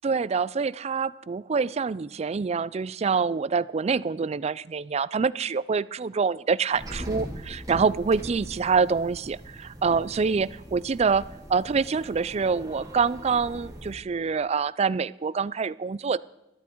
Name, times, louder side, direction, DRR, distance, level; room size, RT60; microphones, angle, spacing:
voice 1, 0.0-16.2, right 5 dB, 35° right, 20 dB, 0.4 m, -26 dB
sound 1, 6.7-13.9, equal, 20° right, 2.6 m, -41 dB
14.0 x 13.0 x 4.5 m, 0.97 s
head